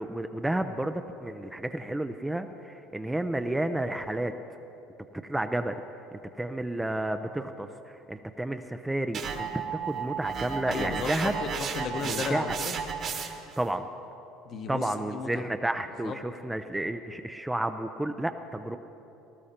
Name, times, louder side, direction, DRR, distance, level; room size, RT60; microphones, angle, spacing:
voice 1, 0.0-4.3 5.3-5.8 6.1-11.4 12.0-12.6 13.6-13.9 14.7-18.8, right 1 dB, 5° right, 7 dB, 0.4 m, -31 dB
sound 1, 9.1-13.5, right 6 dB, 40° right, 1.3 m, -33 dB
voice 2, 10.7-12.8 14.4-15.5 16.0-16.2, left 5 dB, 40° left, 7 dB, 1.0 m, -35 dB
18.5 x 12.5 x 4.3 m, 2.9 s
cardioid pair, 130°, 0 cm